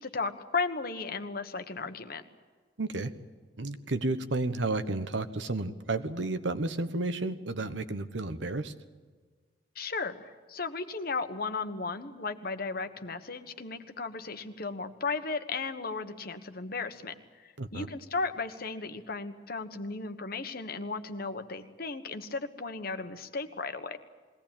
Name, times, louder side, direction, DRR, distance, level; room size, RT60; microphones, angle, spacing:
voice 1, 0.0-2.2 9.7-24.0, left 4 dB, 55° left, 8 dB, 1.3 m, -35 dB
voice 2, 2.8-3.1 3.6-8.7 17.6-17.9, right 2 dB, 85° right, 10 dB, 1.3 m, -32 dB
21.5 x 17.5 x 8.8 m, 1.5 s
head